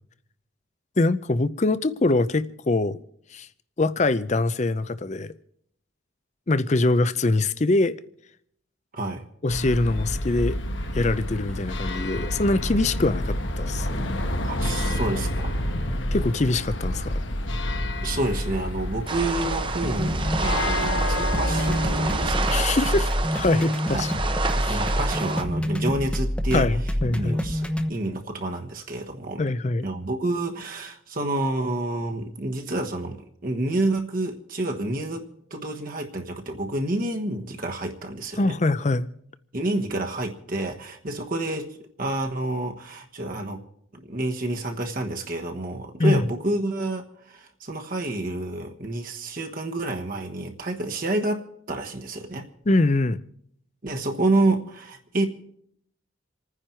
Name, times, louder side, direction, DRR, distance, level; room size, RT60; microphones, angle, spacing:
voice 1, 1.0-3.0 3.3-3.5 3.8-5.3 6.5-8.0 9.4-10.6 10.9-14.1 16.1-17.2 22.5-24.1 24.6-24.8 26.5-27.4 29.4-29.8 38.4-39.1 46.0-46.3 52.7-53.2, left 2 dB, 35° left, 0.5 m, -23 dB
sound 1, 9.5-22.3, left 1 dB, 65° left, 1.3 m, -28 dB
voice 2, 14.4-15.7 18.0-22.7 23.9-24.1 24.4-26.7 27.1-29.4 29.8-35.2 35.5-38.6 39.5-43.6 43.9-52.5 53.8-55.3, right 2 dB, 45° right, 1.3 m, -29 dB
sound 2, 19.1-25.4, right 4 dB, 25° right, 0.8 m, -29 dB
sound 3, 19.8-27.9, equal, 5° left, 0.8 m, -27 dB
28.0 x 9.8 x 4.5 m
head